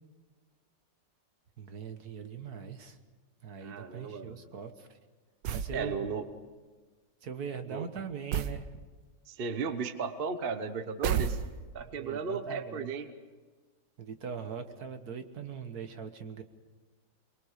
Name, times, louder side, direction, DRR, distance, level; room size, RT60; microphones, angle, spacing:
voice 1, 1.6-3.0 3.4-5.0 5.5-6.0 7.2-8.7 11.9-13.0 14.0-16.4, right 6 dB, 60° right, 7 dB, 1.7 m, -41 dB
voice 2, 3.6-4.4 5.7-6.2 7.7-7.9 9.3-11.4 11.7-13.1, right 5 dB, 40° right, 10 dB, 1.0 m, -35 dB
sound 1, 5.4-5.8 8.3-8.6 11.0-11.8, right 8 dB, 75° right, 1.6 m, -31 dB
23.5 x 22.5 x 6.6 m, 1.4 s
omnidirectional pair, 2.0 m